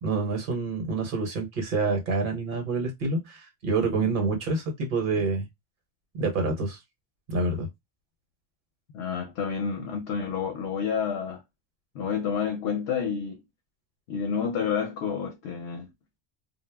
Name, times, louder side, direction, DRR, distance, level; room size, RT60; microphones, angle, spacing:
voice 1, 0.0-5.4 6.1-6.8 7.3-7.7, right 3 dB, 50° right, 1.0 m, -27 dB
voice 2, 8.9-11.4 11.9-13.4 14.1-15.9, left 7 dB, 70° left, 0.8 m, -29 dB
2.2 x 2.0 x 3.3 m
omnidirectional pair, 1.2 m